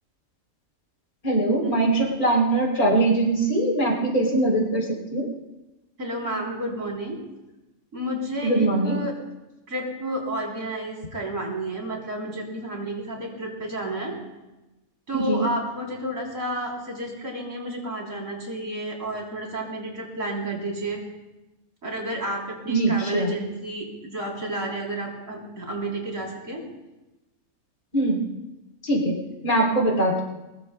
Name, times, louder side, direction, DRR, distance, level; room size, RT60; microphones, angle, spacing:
voice 1, 1.2-5.3 8.4-9.0 15.1-15.5 22.7-23.3 27.9-28.2 28.8-29.2 29.4-30.2, right 2 dB, 85° left, -2 dB, 3.9 m, -22 dB
voice 2, 6.0-7.2 7.9-9.1 9.7-14.2 15.1-21.0 21.8-26.6, right 1 dB, 70° right, -2 dB, 3.9 m, -31 dB
22.0 x 20.5 x 2.2 m, 1.0 s
omnidirectional pair, 1.5 m